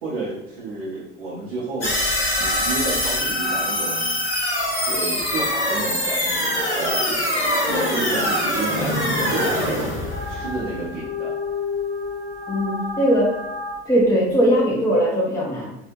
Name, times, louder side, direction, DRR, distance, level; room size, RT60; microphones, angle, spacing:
voice 1, 0.0-1.9 2.4-4.2 4.8-9.0 9.2-9.9 10.3-11.3, right 3 dB, 70° right, -7 dB, 0.7 m, -31 dB
sound 1, 1.8-11.1, left 1 dB, 85° left, 0.6 m, -23 dB
sound 2, 8.7-13.7, left 4 dB, 25° left, 0.9 m, -31 dB
voice 2, 12.5-13.4 13.9-15.7, equal, 10° left, -3 dB, 0.5 m, -19 dB
2.7 x 2.1 x 2.6 m, 0.86 s
figure-of-eight pair, 60°, 33 cm